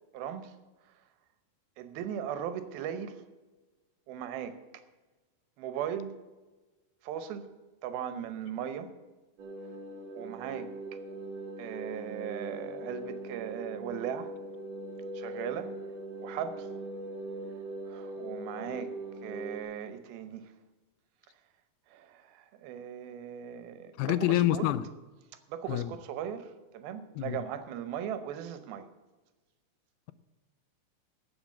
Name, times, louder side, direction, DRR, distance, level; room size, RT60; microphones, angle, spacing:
voice 1, 0.1-0.5 1.8-3.2 4.1-4.6 5.6-6.1 7.0-7.5 7.8-8.9 10.1-10.7 11.6-14.3 15.1-15.7 16.2-16.7 17.9-18.9 19.2-20.5 21.9-24.7 25.5-28.9, right 9 dB, 80° right, 10 dB, 2.7 m, -38 dB
sound 1, 9.4-19.6, right 2 dB, 60° right, 2.1 m, -41 dB
voice 2, 24.0-24.8 25.7-25.9 27.2-27.4, left 14 dB, 85° left, 15 dB, 2.4 m, -27 dB
13.0 x 7.0 x 7.3 m, 1.2 s
omnidirectional pair, 4.3 m